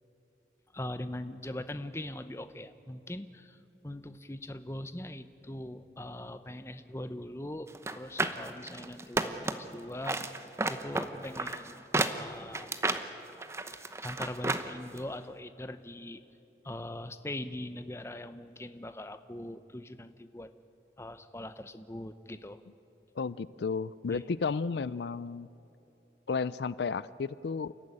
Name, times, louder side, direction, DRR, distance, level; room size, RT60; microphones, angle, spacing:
voice 1, 0.7-3.6 3.8-10.2 10.7-12.7 14.0-16.2 16.6-20.5 21.0-22.6 24.1-24.2, left 1 dB, 15° left, 11 dB, 0.8 m, -41 dB
sound 1, 7.7-9.7 10.0-14.7 15.0-15.1, right 2 dB, 15° right, 0.9 m, -32 dB
voice 2, 23.2-25.5 26.3-27.7, left 5 dB, 75° left, 18 dB, 0.4 m, -33 dB
29.5 x 14.0 x 10.0 m, 3.0 s
head